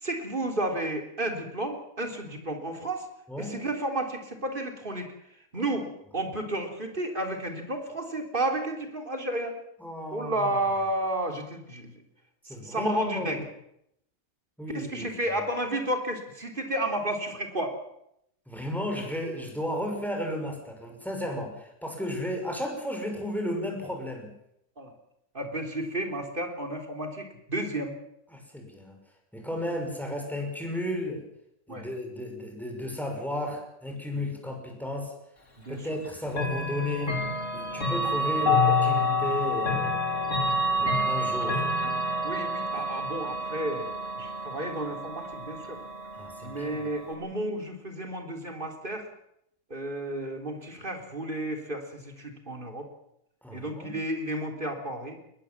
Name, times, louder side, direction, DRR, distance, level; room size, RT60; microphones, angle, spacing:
voice 1, 0.0-3.1 3.4-5.1 5.5-9.6 10.1-11.9 12.5-13.4 14.7-17.8 24.8-24.9 25.3-28.0 30.1-30.2 31.7-31.9 34.1-34.3 35.6-35.8 40.8-40.9 42.2-45.8 46.4-49.1 49.7-52.9 53.5-55.2, right 1 dB, 35° right, 3 dB, 3.8 m, -32 dB
voice 2, 9.8-10.6 12.5-13.4 14.6-15.1 18.5-24.3 28.3-29.0 29.3-31.2 31.7-35.1 35.7-37.2 37.5-40.0 40.8-41.6 46.1-46.8 53.4-54.0, left 1 dB, ahead, 2 dB, 6.1 m, -34 dB
Chime / Clock, 36.3-47.1, left 2 dB, 55° left, 4.0 m, -28 dB
21.0 x 21.0 x 7.4 m, 0.77 s
omnidirectional pair, 1.5 m